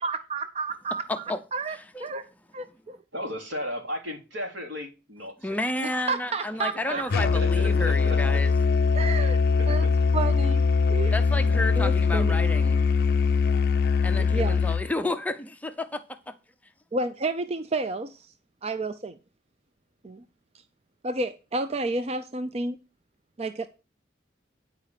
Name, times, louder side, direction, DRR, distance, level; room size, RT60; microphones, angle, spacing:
voice 1, 0.0-2.3 2.5-3.0 5.8-7.0 8.9-9.4 9.7-9.9 10.1-10.6 10.9-11.2 11.8-12.4 14.2-14.6 16.9-18.3 18.6-19.2 20.0-20.2 21.0-22.8 23.4-23.7, right 3 dB, 35° right, 0.5 m, -31 dB
voice 2, 1.1-1.4 1.9-2.0 5.4-8.5 11.1-12.9 14.0-16.3, left 2 dB, 10° left, 0.6 m, -31 dB
voice 3, 3.1-5.6 6.8-8.2 9.6-9.9, left 1 dB, 90° right, 3.1 m, -35 dB
Musical instrument, 7.1-14.9, left 5 dB, 55° left, 0.4 m, -22 dB
9.9 x 4.9 x 6.6 m
head